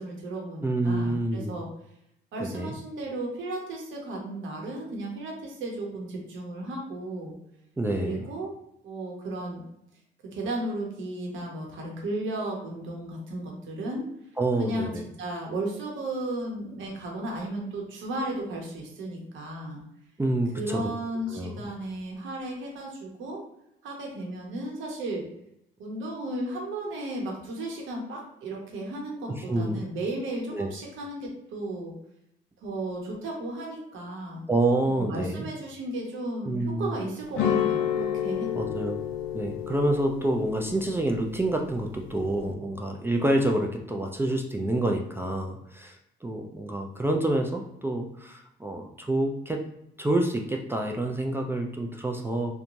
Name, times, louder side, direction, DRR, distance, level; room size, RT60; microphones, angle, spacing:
voice 1, 0.0-1.7 2.3-7.4 8.0-8.5 8.8-9.6 10.2-14.1 14.6-14.9 15.2-19.8 20.6-23.4 23.8-25.3 25.8-31.9 32.6-34.4 34.9-38.7, right 1 dB, 80° right, 0 dB, 0.9 m, -34 dB
voice 2, 0.6-1.5 2.4-2.7 7.8-8.2 14.4-15.1 20.2-20.8 21.3-21.6 29.4-29.8 30.5-30.7 34.5-35.5 36.4-36.9 38.5-39.0 39.3-46.0 46.2-49.6 50.0-52.5, right 1 dB, 10° right, 1 dB, 0.3 m, -27 dB
sound 1, 37.3-42.5, left 9 dB, 80° left, 0.5 m, -31 dB
3.0 x 2.2 x 2.6 m, 0.80 s
cardioid pair, 90°, 20 cm